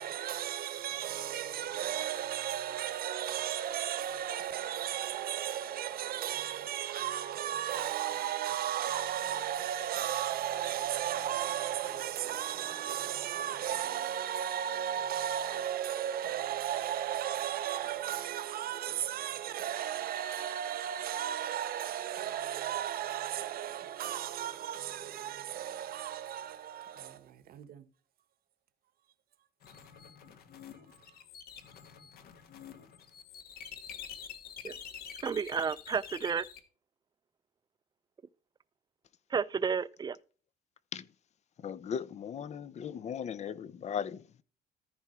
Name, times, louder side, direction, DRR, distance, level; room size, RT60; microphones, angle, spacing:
voice 1, 0.0-27.9 30.9-31.1, right 10 dB, 60° right, 1.2 m, -35 dB
sound 1, 29.6-36.6, left 8 dB, 65° left, 1.6 m, -48 dB
voice 2, 35.2-36.4 39.3-40.2, right 6 dB, 25° right, 0.5 m, -31 dB
voice 3, 41.6-44.4, left 8 dB, 40° left, 0.7 m, -38 dB
14.0 x 4.7 x 4.3 m
cardioid pair, 110°, 17 cm